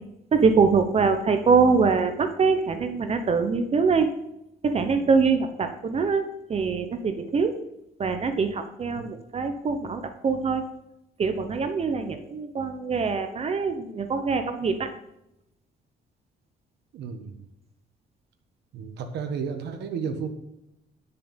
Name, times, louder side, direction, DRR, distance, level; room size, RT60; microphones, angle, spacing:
voice 1, 0.3-4.1 4.6-7.6 8.0-10.6 11.2-14.9, right 5 dB, 35° right, 8 dB, 0.9 m, -23 dB
voice 2, 16.9-17.4 18.7-20.3, right 6 dB, 85° right, 6 dB, 1.3 m, -32 dB
10.5 x 6.8 x 5.3 m, 0.85 s
cardioid pair, 125°, 17 cm